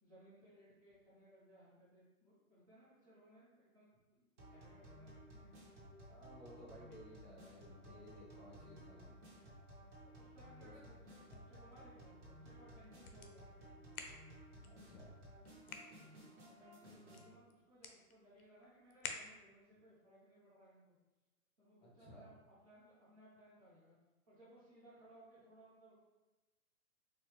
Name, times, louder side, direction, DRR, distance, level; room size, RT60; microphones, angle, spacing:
voice 1, 0.0-5.5 7.7-7.9 9.8-9.9 10.2-13.9 16.2-20.9 21.6-23.9 24.3-26.0, right 1 dB, 25° right, -11 dB, 0.8 m, -64 dB
sound 1, 4.4-17.3, equal, 50° right, 1.2 m, -57 dB
voice 2, 6.1-9.1 10.6-10.7 14.6-15.1 21.8-22.3, equal, 30° left, -6 dB, 1.5 m, -57 dB
sound 2, 11.0-19.7, left 5 dB, 75° left, 0.7 m, -54 dB
4.5 x 2.3 x 3.1 m, 1.1 s
hypercardioid pair, 175°, 44 cm